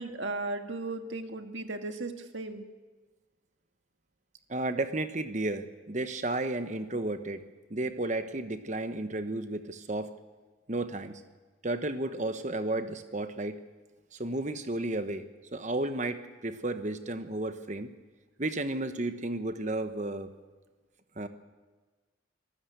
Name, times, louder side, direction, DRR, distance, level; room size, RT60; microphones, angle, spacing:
voice 1, 0.0-2.6, right 2 dB, 70° right, 6 dB, 1.7 m, -36 dB
voice 2, 4.5-7.4 7.7-10.1 10.7-11.2 11.6-13.6 14.1-15.2 15.5-17.9 18.4-20.3 21.2-21.3, right 2 dB, 35° right, 9 dB, 1.1 m, -33 dB
25.0 x 13.0 x 8.0 m, 1.3 s
head